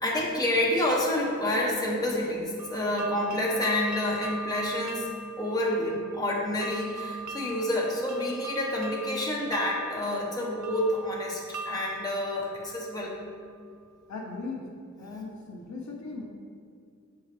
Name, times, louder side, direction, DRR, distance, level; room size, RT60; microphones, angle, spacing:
voice 1, 0.0-5.1 5.4-13.1, left 1 dB, 10° left, -4 dB, 1.2 m, -28 dB
sound 1, 2.6-13.4, right 2 dB, 70° right, 0.5 m, -40 dB
voice 2, 14.1-14.6 15.0-16.2, left 3 dB, 65° left, -1 dB, 1.2 m, -38 dB
7.0 x 4.7 x 3.5 m, 2.2 s
cardioid pair, 65°, 30 cm